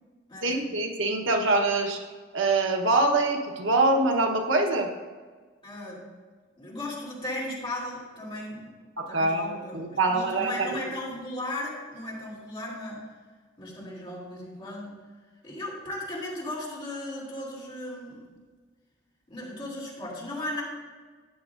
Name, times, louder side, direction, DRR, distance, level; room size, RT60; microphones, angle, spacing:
voice 1, 0.4-2.0 2.3-4.9 9.0-10.9, right 2 dB, 80° right, 3 dB, 1.0 m, -24 dB
voice 2, 5.6-6.0 6.6-8.7 9.1-13.0 13.6-14.9 15.4-18.2 19.3-20.6, left 1 dB, 25° left, -5 dB, 2.9 m, -36 dB
12.5 x 8.9 x 2.5 m, 1.4 s
head